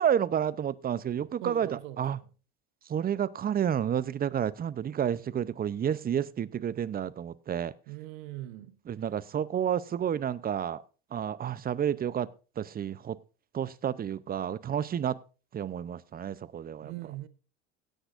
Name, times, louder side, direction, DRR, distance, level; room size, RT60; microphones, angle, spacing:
voice 1, 0.0-2.2 2.9-7.7 8.9-10.8 11.1-12.3 12.6-13.2 13.5-15.2 15.5-16.9, right 9 dB, 25° right, 0.6 m, -30 dB
voice 2, 1.4-2.2 7.9-8.8 16.8-17.3, right 15 dB, 70° right, 1.0 m, -41 dB
17.0 x 10.0 x 2.5 m
hypercardioid pair, 85°, 33 cm